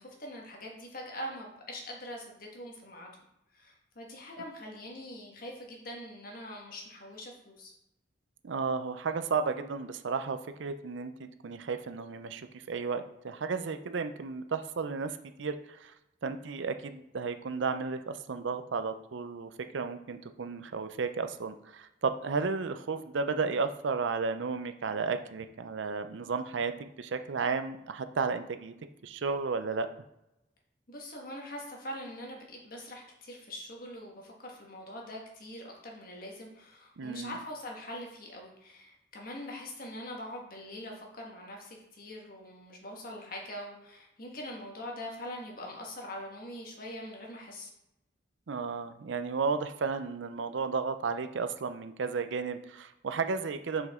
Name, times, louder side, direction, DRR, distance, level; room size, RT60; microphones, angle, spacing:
voice 1, 0.0-3.1 3.5-7.7 30.9-47.7, left 1 dB, 50° left, 0 dB, 1.5 m, -43 dB
voice 2, 8.4-15.9 16.2-28.7 29.0-29.9 37.0-37.4 48.5-53.9, right 4 dB, 75° right, 9 dB, 0.5 m, -33 dB
6.4 x 5.2 x 3.6 m, 0.88 s
head